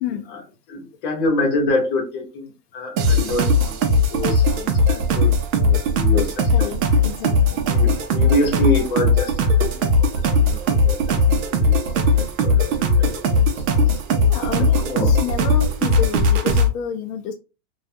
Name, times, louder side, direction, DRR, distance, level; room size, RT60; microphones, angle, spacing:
voice 1, 0.7-6.7 7.7-10.1 10.4-14.0 14.5-15.1, left 2 dB, 35° left, 0.8 m, -27 dB
sound 1, 3.0-16.7, left 2 dB, 55° right, 0.6 m, -18 dB
voice 2, 6.5-7.7 8.2-8.3 14.2-17.3, left 8 dB, 70° left, 0.5 m, -30 dB
2.3 x 2.3 x 2.6 m
supercardioid pair, 165°, 49 cm